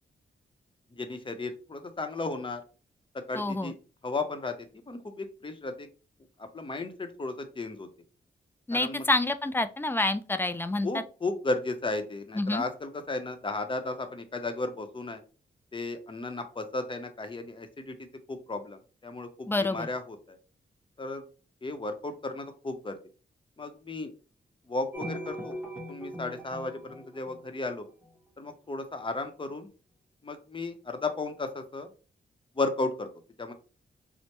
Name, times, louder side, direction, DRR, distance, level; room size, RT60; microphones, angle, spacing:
voice 1, 1.0-2.6 3.3-3.7 4.0-5.9 6.4-7.9 8.7-9.0 10.8-15.2 15.7-17.9 18.3-20.4 21.0-21.2 21.6-23.0 23.6-24.1 24.7-25.5 25.9-27.9 28.4-29.7 30.2-31.9 32.6-33.1 33.4-33.5, left 3 dB, 30° left, 6 dB, 0.7 m, -34 dB
voice 2, 3.3-3.7 8.7-11.0 12.3-12.6 19.5-19.9, left 2 dB, 10° left, 10 dB, 0.3 m, -28 dB
sound 1, 24.9-28.1, equal, 10° right, 1.1 m, -40 dB
4.5 x 2.1 x 2.9 m, 0.35 s
cardioid pair, 80°, 18 cm